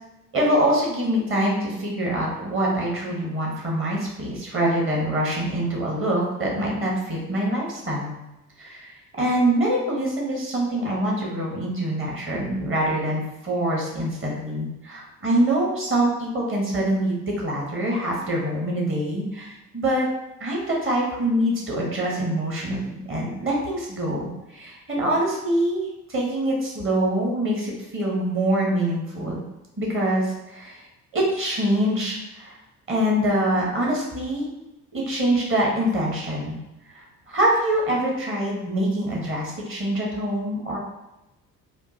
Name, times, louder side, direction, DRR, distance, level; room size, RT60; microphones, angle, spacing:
voice 1, 0.3-8.2 8.6-20.1 20.4-29.4 29.8-30.8 31.1-32.6 32.9-34.5 34.9-36.6 36.9-40.8, right 1 dB, 25° right, -3 dB, 1.2 m, -24 dB
3.6 x 2.3 x 2.7 m, 0.94 s
figure-of-eight pair, 50°, 45 cm